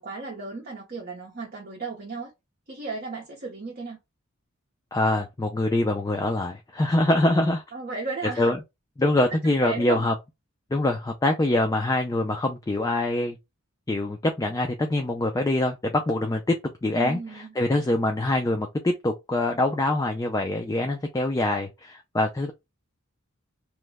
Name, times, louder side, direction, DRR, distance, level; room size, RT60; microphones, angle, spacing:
voice 1, 0.0-2.3 2.7-4.0 7.7-8.5 9.3-10.0 16.9-17.5, right 4 dB, 45° right, 0.7 m, -34 dB
voice 2, 4.9-7.6 8.4-8.6 9.0-10.1 10.7-13.4 13.9-16.6 16.8-22.5, left 1 dB, 15° left, 0.3 m, -24 dB
3.0 x 2.1 x 3.3 m
head